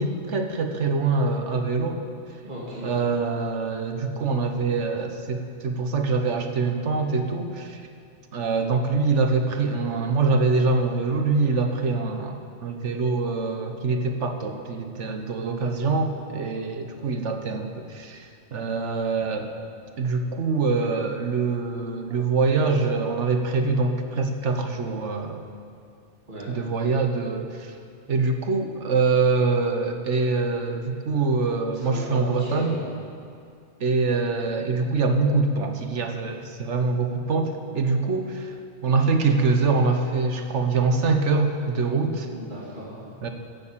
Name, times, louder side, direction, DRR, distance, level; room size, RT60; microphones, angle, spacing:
voice 1, 0.0-2.0 2.8-7.8 8.3-18.3 18.5-19.5 20.0-25.4 26.5-27.7 28.1-32.8 33.8-38.5 38.8-42.3 43.2-43.3, right 4 dB, 80° right, 5 dB, 1.4 m, -24 dB
voice 2, 2.4-3.0 26.3-26.6 31.7-32.8 42.3-43.0, right 1 dB, 40° right, -7 dB, 2.9 m, -36 dB
15.0 x 8.6 x 7.4 m, 2.3 s
omnidirectional pair, 1.2 m